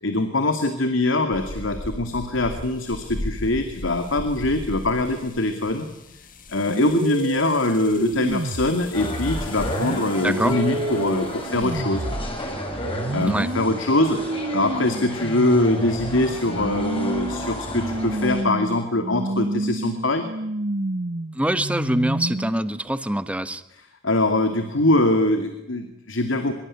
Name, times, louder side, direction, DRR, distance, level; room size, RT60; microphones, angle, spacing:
voice 1, 0.0-5.9 6.5-12.1 13.1-14.2 14.5-20.3 24.0-26.5, left 2 dB, 80° left, 7 dB, 2.5 m, -23 dB
sound 1, 1.3-11.8, left 1 dB, 45° left, 1.7 m, -38 dB
sound 2, 6.7-22.8, right 2 dB, 50° right, 1.0 m, -29 dB
sound 3, 8.9-18.4, left 1 dB, 30° left, 6.7 m, -32 dB
voice 2, 10.2-10.6 13.2-13.5 21.3-23.6, right 1 dB, 5° right, 13 dB, 1.1 m, -24 dB
24.5 x 23.0 x 10.0 m, 0.85 s
head